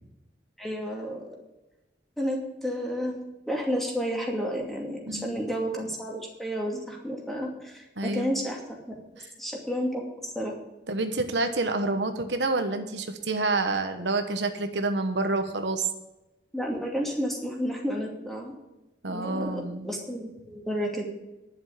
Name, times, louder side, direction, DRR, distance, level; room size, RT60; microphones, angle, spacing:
voice 1, 0.6-1.4 2.2-8.6 9.4-10.5 16.5-18.5 19.1-21.0, equal, ahead, -2 dB, 2.6 m, -31 dB
voice 2, 8.0-8.3 10.9-15.9 19.0-19.9, right 2 dB, 85° right, 7 dB, 1.2 m, -28 dB
11.0 x 7.2 x 8.0 m, 1.0 s
head